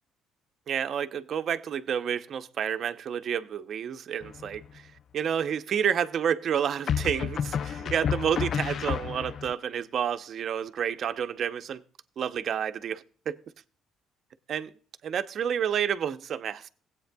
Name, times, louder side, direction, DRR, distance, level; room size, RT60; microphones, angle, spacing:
voice 1, 0.7-4.6 5.1-11.8 12.2-13.4 14.5-14.7 15.0-16.7, right 8 dB, 60° right, 0.7 m, -29 dB
sound 1, 4.2-4.8 6.9-9.5, left 8 dB, 55° left, 0.4 m, -30 dB
17.0 x 8.3 x 2.3 m
supercardioid pair, 80°, 0 cm